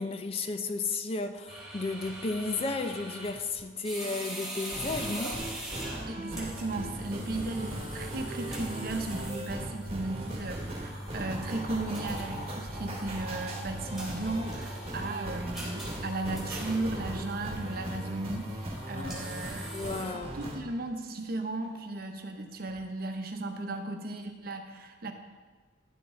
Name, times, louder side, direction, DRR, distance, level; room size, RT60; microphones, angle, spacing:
voice 1, 0.0-5.4 18.9-19.2 19.7-20.3, left 3 dB, 30° left, 8 dB, 0.4 m, -33 dB
sound 1, 1.5-20.5, right 1 dB, ahead, 2.5 m, -41 dB
sound 2, 4.7-20.6, right 1 dB, 35° right, 1.3 m, -39 dB
voice 2, 6.1-19.7 20.0-25.1, right 2 dB, 55° right, 5 dB, 0.8 m, -36 dB
sound 3, 10.2-10.7 11.2-11.9 12.2-18.0 18.4-23.1 23.4-23.5, equal, 60° left, 1.9 m, -58 dB
11.0 x 6.0 x 3.8 m, 1.4 s
head